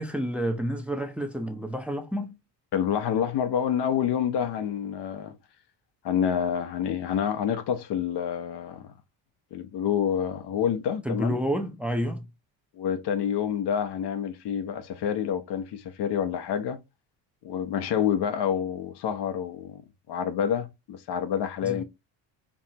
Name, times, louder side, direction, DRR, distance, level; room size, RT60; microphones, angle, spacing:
voice 1, 0.0-2.3 11.0-12.2 21.6-21.8, equal, 5° right, 0.7 m, -29 dB
voice 2, 2.7-5.3 6.0-8.9 9.5-11.4 12.8-16.8 17.4-19.8 20.1-21.8, left 8 dB, 60° left, 0.8 m, -28 dB
4.7 x 2.6 x 2.7 m
supercardioid pair, 80°, 47 cm